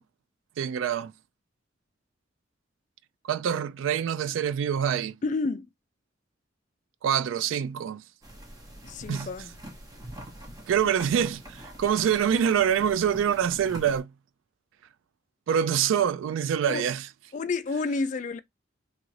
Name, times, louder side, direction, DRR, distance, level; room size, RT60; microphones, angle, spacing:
voice 1, 0.6-1.1 3.2-5.2 7.0-8.0 9.1-9.3 10.7-14.1 15.5-17.1, right 8 dB, 85° right, 0.3 m, -25 dB
voice 2, 5.2-5.7 8.8-9.5 16.7-16.9 17.3-18.4, left 3 dB, 40° left, 0.3 m, -30 dB
sound 1, 8.2-14.0, right 1 dB, 20° right, 0.7 m, -44 dB
2.9 x 2.4 x 3.1 m
head